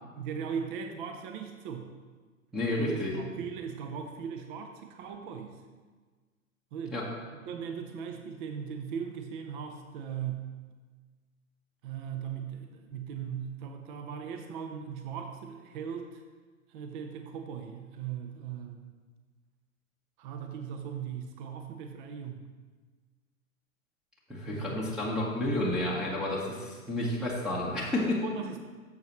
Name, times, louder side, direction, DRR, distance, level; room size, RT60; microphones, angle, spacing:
voice 1, 0.1-2.0 2.8-5.6 6.7-7.0 7.5-10.6 11.8-16.2 16.7-19.0 20.2-22.5 24.5-24.8 27.7-28.6, right 7 dB, 40° right, 6 dB, 0.7 m, -39 dB
voice 2, 2.5-3.1 6.9-7.0 24.3-28.2, left 1 dB, ahead, -8 dB, 1.4 m, -30 dB
12.0 x 7.4 x 3.2 m, 1.4 s
hypercardioid pair, 120°, 41 cm